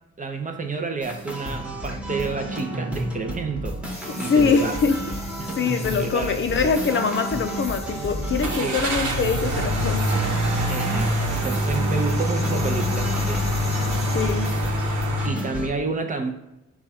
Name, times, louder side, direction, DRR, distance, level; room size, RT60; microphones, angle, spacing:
voice 1, 0.2-4.8 5.4-6.7 8.6-8.8 10.7-13.5 15.2-16.3, right 4 dB, 25° right, 4 dB, 0.6 m, -30 dB
sound 1, 1.0-15.7, right 1 dB, 5° right, 1.1 m, -32 dB
sound 2, 3.9-14.5, left 2 dB, 20° left, 1.3 m, -41 dB
voice 2, 4.3-5.0 5.6-10.0 10.4-10.5 14.1-14.5, left 5 dB, 40° left, 6 dB, 0.5 m, -23 dB
sound 3, 5.2-5.4 5.8-5.9 8.4-15.3, equal, 75° right, 0.9 m, -25 dB
4.7 x 2.4 x 4.2 m, 0.95 s
cardioid pair, 90°, 30 cm